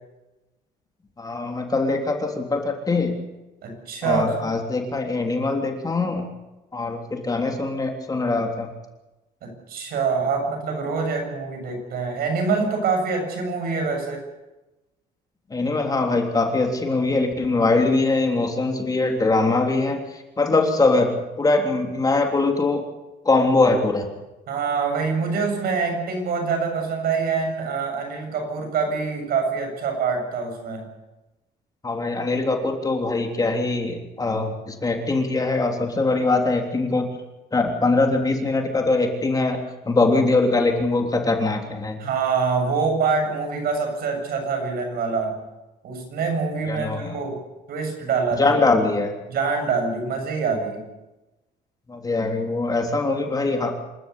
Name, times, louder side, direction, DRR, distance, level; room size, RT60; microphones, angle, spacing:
voice 1, 1.2-3.1 4.0-6.2 6.7-8.7 15.5-20.0 20.4-22.8 23.2-24.1 31.8-37.1 37.5-39.6 39.9-42.0 46.7-47.1 48.4-49.1 51.9-53.8, left 3 dB, 20° left, 2 dB, 3.4 m, -22 dB
voice 2, 3.6-4.5 9.4-14.2 24.5-30.9 42.0-45.4 45.8-47.4 47.7-48.6 49.3-50.8, right 5 dB, 65° right, 4 dB, 7.5 m, -25 dB
27.5 x 13.0 x 8.5 m, 1.0 s
cardioid pair, 110°, 17 cm